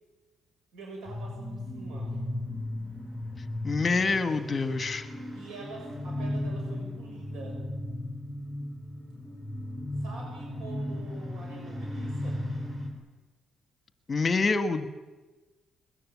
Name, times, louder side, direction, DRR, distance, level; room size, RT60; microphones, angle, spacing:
voice 1, 0.7-2.2 5.3-7.6 10.0-12.4, right 2 dB, 70° right, -1 dB, 6.4 m, -45 dB
sound 1, 1.0-12.9, left 1 dB, 20° right, 4.3 m, -36 dB
voice 2, 3.6-5.1 14.1-14.9, left 4 dB, 20° left, 10 dB, 1.3 m, -26 dB
22.0 x 20.5 x 8.4 m, 1.2 s
cardioid pair, 170°, 0 cm